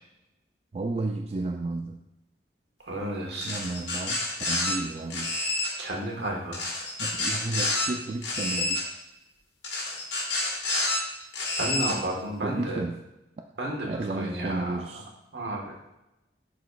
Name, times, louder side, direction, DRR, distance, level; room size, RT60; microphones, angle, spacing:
voice 1, 0.7-2.0 3.4-5.3 7.0-8.8 12.4-13.0 13.9-15.1, right 2 dB, 35° right, 4 dB, 0.3 m, -32 dB
voice 2, 2.8-3.5 5.8-6.7 11.6-12.8 13.6-14.8 15.3-15.7, right 1 dB, 70° right, 0 dB, 1.4 m, -32 dB
sound 1, 3.4-4.8 5.1-5.7 6.5-7.9 8.2-8.8 9.6-11.0 11.3-11.9, left 2 dB, 70° left, 1.7 m, -28 dB
11.0 x 4.1 x 2.3 m, 0.93 s
head